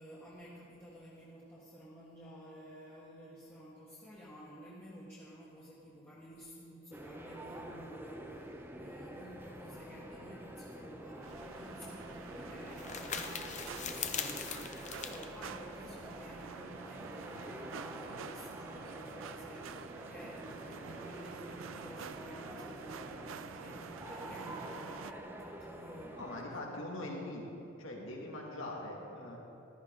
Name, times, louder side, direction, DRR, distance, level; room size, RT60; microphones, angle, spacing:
voice 1, 0.0-26.2 26.5-26.6 29.1-29.3, equal, 10° left, -9 dB, 1.6 m, -52 dB
sound 1, 6.9-26.4, right 1 dB, 10° right, 0.8 m, -47 dB
sound 2, 11.2-25.1, right 7 dB, 65° right, 0.4 m, -48 dB
sound 3, 11.3-16.5, left 7 dB, 35° left, 0.7 m, -42 dB
voice 2, 26.2-27.5 27.8-29.4, left 1 dB, 65° left, -1 dB, 2.2 m, -42 dB
14.5 x 13.5 x 3.8 m, 2.8 s
head